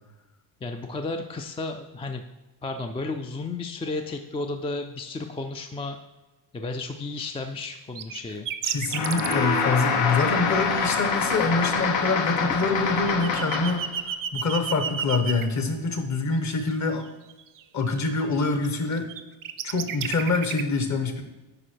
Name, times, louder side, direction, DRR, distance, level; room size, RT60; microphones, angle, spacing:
voice 1, 0.6-2.2 2.6-6.0 6.5-8.5, left 3 dB, 15° left, 6 dB, 0.3 m, -33 dB
sound 1, 7.6-7.7 8.0-9.3 10.5-10.9 11.3-15.4 16.3-17.6 18.0-18.7 18.9-20.6, right 8 dB, 50° right, 0.5 m, -32 dB
voice 2, 8.6-17.0 17.7-19.1 19.6-21.2, left 3 dB, 40° left, 6 dB, 1.1 m, -25 dB
sound 2, 8.9-13.9, left 5 dB, 80° left, 1.3 m, -25 dB
9.8 x 4.4 x 4.5 m, 1.1 s
cardioid pair, 125°, 43 cm